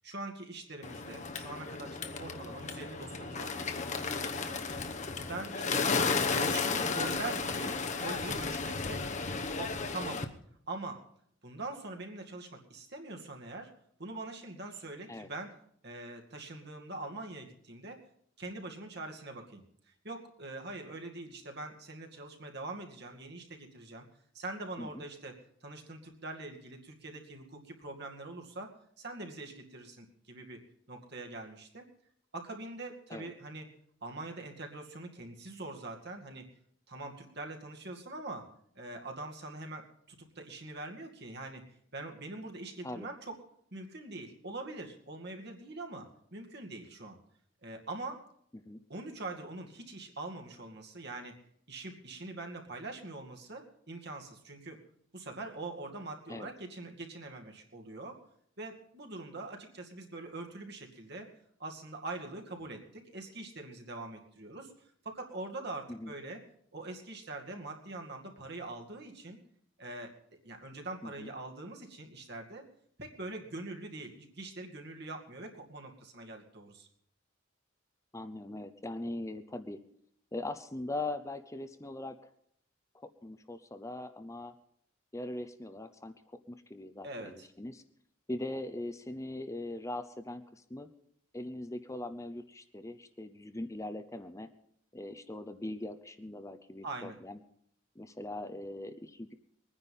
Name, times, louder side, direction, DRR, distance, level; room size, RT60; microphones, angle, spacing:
voice 1, 0.0-4.9 5.3-5.9 6.3-9.1 9.6-10.3 10.7-11.0 11.4-13.7 14.0-15.5 15.8-18.0 18.4-24.1 24.3-25.3 25.6-28.7 29.0-30.6 30.9-31.9 32.3-33.7 34.0-36.5 36.9-38.5 38.7-41.6 41.9-43.4 43.7-47.2 47.6-48.2 48.9-51.4 51.7-54.8 55.1-58.2 58.6-61.3 61.6-64.7 65.0-66.4 66.7-69.4 69.8-70.1 70.4-72.7 73.0-76.9 87.0-87.5 96.8-97.2, right 2 dB, 55° right, 3 dB, 2.3 m, -43 dB
Bird, 0.8-10.2, left 4 dB, 40° left, 1.0 m, -34 dB
voice 2, 78.1-79.8 80.3-82.2 82.9-84.5 85.1-87.8 88.3-90.9 91.3-94.5 94.9-97.4 98.0-99.3, left 1 dB, 15° left, 10 dB, 0.7 m, -41 dB
22.0 x 9.9 x 5.5 m, 0.66 s
head